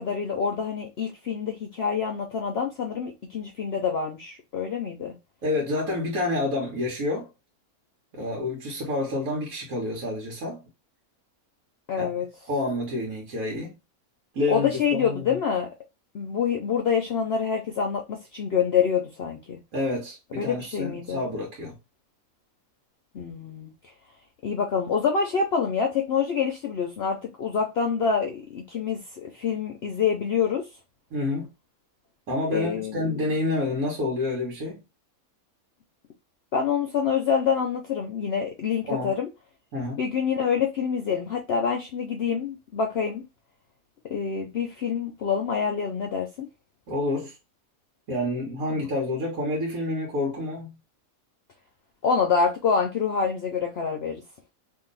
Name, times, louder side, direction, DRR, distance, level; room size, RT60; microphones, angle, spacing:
voice 1, 0.0-5.1 11.9-12.3 14.5-15.7 16.1-19.6 20.4-21.2 23.1-23.7 24.4-30.7 32.5-33.2 36.5-39.3 40.0-43.2 44.1-46.5 48.7-48.8 52.0-54.2, left 6 dB, 60° left, 0.7 m, -26 dB
voice 2, 5.4-7.3 8.1-10.6 12.0-12.1 12.5-13.7 14.3-15.2 19.7-21.8 31.1-31.5 32.3-34.8 38.9-39.1 39.7-40.0 46.9-47.3 48.1-50.7, left 2 dB, 75° right, 1.5 m, -28 dB
2.9 x 2.6 x 3.8 m
omnidirectional pair, 1.5 m